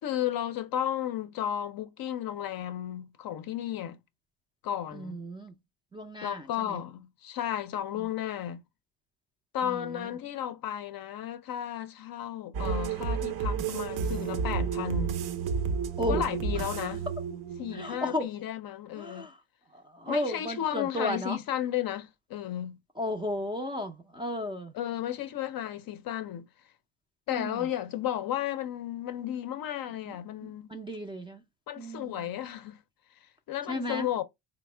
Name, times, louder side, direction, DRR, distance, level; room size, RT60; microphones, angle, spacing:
voice 1, 0.0-4.0 4.6-5.2 6.2-8.6 9.5-15.2 16.1-17.0 17.6-19.3 20.1-22.8 24.7-26.5 27.3-30.7 31.7-32.8 33.5-34.2, left 11 dB, 50° left, 0.5 m, -33 dB
voice 2, 4.9-5.6 5.9-6.8 7.9-8.1 9.6-10.1 16.0-16.2 16.5-16.8 17.7-18.3 19.0-19.4 19.7-21.4 23.0-24.7 27.3-27.7 30.0-31.4 31.8-32.3 33.7-34.1, left 1 dB, 10° right, 0.4 m, -34 dB
sound 1, 12.5-18.2, right 6 dB, 55° right, 0.6 m, -31 dB
3.4 x 2.0 x 3.2 m
cardioid pair, 100°, 45 cm